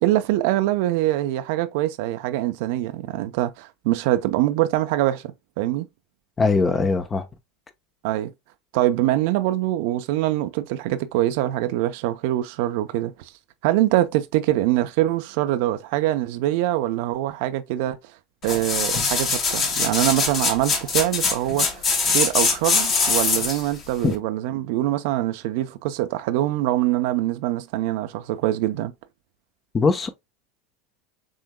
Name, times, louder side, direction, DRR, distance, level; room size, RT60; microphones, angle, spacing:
voice 1, 0.0-5.9 8.0-8.3 8.7-13.3 13.6-18.0 18.4-28.9, right 14 dB, 65° right, 0.6 m, -24 dB
voice 2, 6.4-7.2 24.0-24.1 29.7-30.1, left 4 dB, 25° left, 0.9 m, -20 dB
sound 1, 18.4-23.7 24.1-24.2, left 4 dB, 45° left, 2.2 m, -22 dB
6.3 x 3.6 x 2.2 m
hypercardioid pair, 90°, 0 cm